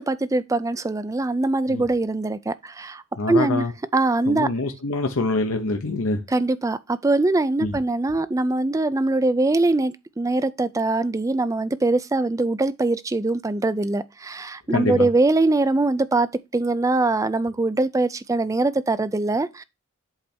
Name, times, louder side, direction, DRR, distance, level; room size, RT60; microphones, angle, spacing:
voice 1, 0.1-3.0 3.3-3.6 3.9-4.5 6.3-19.6, right 2 dB, 15° right, 0.3 m, -22 dB
voice 2, 3.2-3.7 4.3-6.2 7.6-7.8 14.7-15.1, left 2 dB, 70° left, 0.9 m, -25 dB
8.0 x 3.4 x 4.3 m
head